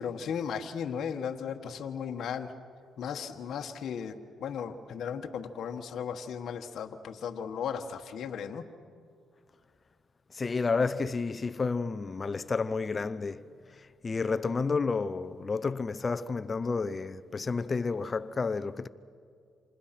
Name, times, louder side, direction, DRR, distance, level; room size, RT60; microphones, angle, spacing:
voice 1, 0.0-2.5 3.0-8.7, left 7 dB, 65° left, 1.3 m, -36 dB
voice 2, 10.3-13.4 14.0-18.9, left 4 dB, 30° left, 0.7 m, -30 dB
27.5 x 27.5 x 5.9 m
cardioid pair, 90°, 0 cm